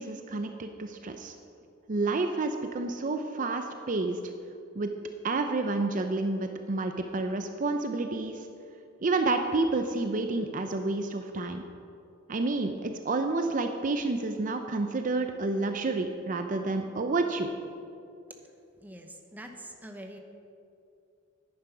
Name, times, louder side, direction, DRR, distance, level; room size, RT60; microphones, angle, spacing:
voice 1, 0.0-1.3 1.9-4.2 4.8-4.9 5.2-8.5 9.0-11.6 12.3-17.5, right 3 dB, 40° right, 6 dB, 0.5 m, -29 dB
voice 2, 18.8-20.2, right 1 dB, 10° right, 4 dB, 0.9 m, -44 dB
10.0 x 9.6 x 5.6 m, 2.6 s
head